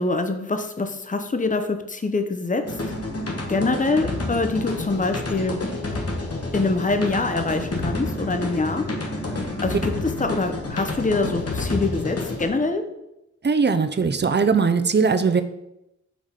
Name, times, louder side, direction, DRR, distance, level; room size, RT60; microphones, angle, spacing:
voice 1, 0.0-2.6 3.5-5.6 6.5-8.9 9.6-9.9 10.2-12.8, left 3 dB, 25° left, 7 dB, 0.7 m, -24 dB
sound 1, 2.6-12.5, left 2 dB, 55° left, 1.2 m, -29 dB
voice 2, 13.4-15.4, right 5 dB, 35° right, 9 dB, 0.5 m, -20 dB
5.0 x 3.5 x 5.6 m, 0.87 s
wide cardioid pair, 45°, 29 cm